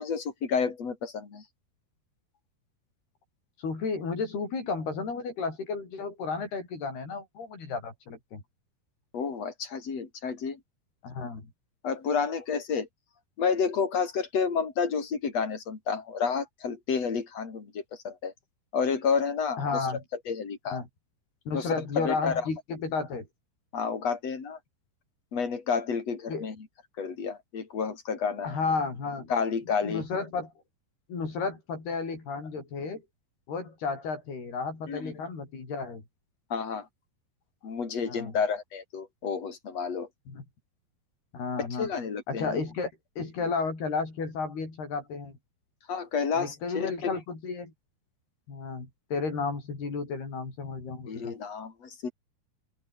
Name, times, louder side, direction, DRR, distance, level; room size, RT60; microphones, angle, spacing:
voice 1, 0.0-1.4 9.1-10.6 11.8-12.9 13.4-18.3 18.7-19.6 20.3-20.8 21.5-22.4 23.7-24.6 25.3-26.6 27.0-28.6 29.3-30.0 34.9-35.1 36.5-36.9 37.6-40.1 41.6-42.6 45.9-47.2 51.1-52.1, left 5 dB, 40° left, 5.5 m, -30 dB
voice 2, 3.6-8.4 11.0-11.5 19.6-20.0 20.7-20.9 21.5-23.3 26.3-26.5 28.4-29.3 29.8-30.5 31.1-33.0 33.5-36.0 38.0-38.3 40.3-40.4 41.3-41.9 42.3-42.9 43.2-45.4 46.3-47.7 48.5-51.3, left 4 dB, 75° left, 9.1 m, -33 dB
open air
omnidirectional pair, 4.6 m